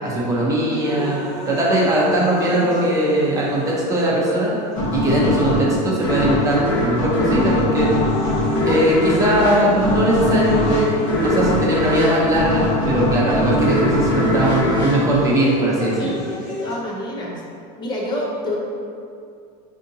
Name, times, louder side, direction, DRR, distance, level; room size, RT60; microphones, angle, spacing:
voice 1, 0.0-1.2 1.5-4.6 4.9-7.9 8.6-10.9 11.2-16.1, right 1 dB, 15° right, -5 dB, 0.7 m, -19 dB
sound 1, 0.7-4.7 5.5-5.6 6.4-6.7 7.2-12.7 13.7-13.8 15.2-16.7, equal, ahead, 1.3 m, -32 dB
sound 2, 4.8-16.0, left 1 dB, 55° left, 1.1 m, -21 dB
voice 2, 16.0-16.3 16.6-17.4 17.8-18.6, left 1 dB, 20° left, -3 dB, 0.6 m, -28 dB
5.0 x 2.8 x 2.6 m, 2.4 s
supercardioid pair, 150°, 21 cm